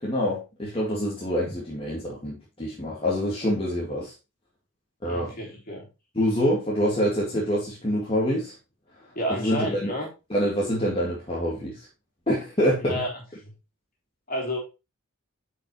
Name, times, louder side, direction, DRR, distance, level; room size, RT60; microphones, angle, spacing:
voice 1, 0.0-4.1 5.0-5.3 6.1-8.5 9.3-9.9 10.3-11.9 12.3-13.0, equal, 25° left, -6 dB, 2.3 m, -26 dB
voice 2, 5.0-5.9 9.1-10.1 12.8-13.1 14.3-14.6, equal, 40° left, 0 dB, 3.3 m, -30 dB
9.2 x 5.8 x 3.2 m, 0.27 s
head